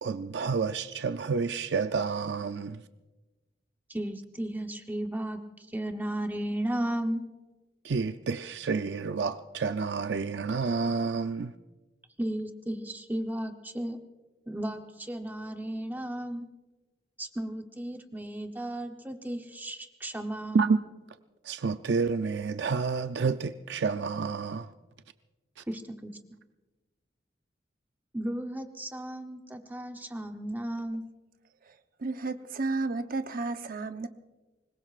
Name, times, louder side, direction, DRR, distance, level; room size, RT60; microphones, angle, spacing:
voice 1, 0.0-2.8 7.8-11.5 20.5-20.8 21.5-24.7, right 5 dB, 75° right, 0.5 m, -29 dB
voice 2, 3.9-5.4 5.7-7.2 12.2-14.0 14.5-16.5 17.2-20.7 25.7-26.2 28.1-31.0, right 1 dB, 10° right, 0.9 m, -34 dB
voice 3, 31.6-34.1, right 3 dB, 55° right, 0.9 m, -33 dB
25.0 x 21.0 x 2.5 m
head